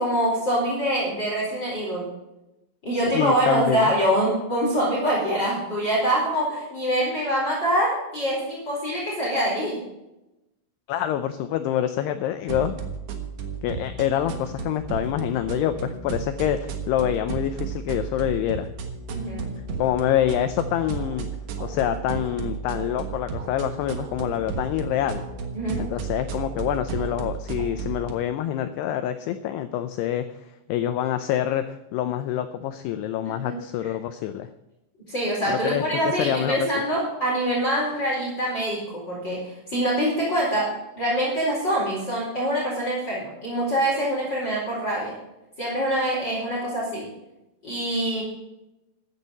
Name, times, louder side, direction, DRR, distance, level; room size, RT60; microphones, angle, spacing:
voice 1, 0.0-2.1 2.8-9.8 19.1-19.5 25.5-25.8 33.2-33.5 35.1-45.1 45.6-47.1 47.6-48.2, right 1 dB, 25° left, -5 dB, 4.5 m, -25 dB
voice 2, 3.0-3.9 10.9-12.8 13.6-18.7 19.8-21.3 21.6-25.2 25.8-34.5 35.5-36.7, left 11 dB, 90° left, 9 dB, 2.3 m, -26 dB
sound 1, 12.5-28.1, right 5 dB, 70° right, 1.9 m, -33 dB
14.5 x 11.0 x 4.1 m, 0.92 s
omnidirectional pair, 5.5 m